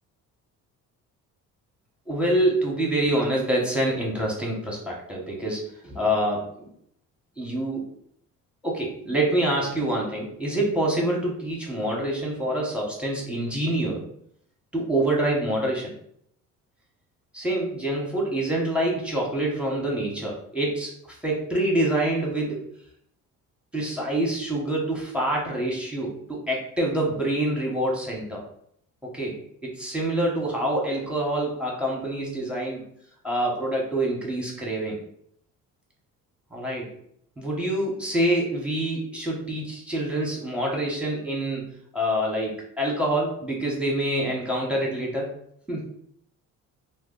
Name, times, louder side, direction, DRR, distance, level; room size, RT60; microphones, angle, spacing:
voice 1, 2.1-6.7 7.4-7.9 8.6-14.0 14.7-15.9 17.3-22.6 23.7-28.4 29.0-32.8 33.2-35.0 36.5-36.9 37.4-45.4 45.7-45.8, right 1 dB, 5° right, -3 dB, 1.0 m, -26 dB
2.6 x 2.1 x 3.8 m, 0.68 s
hypercardioid pair, 60°, 38 cm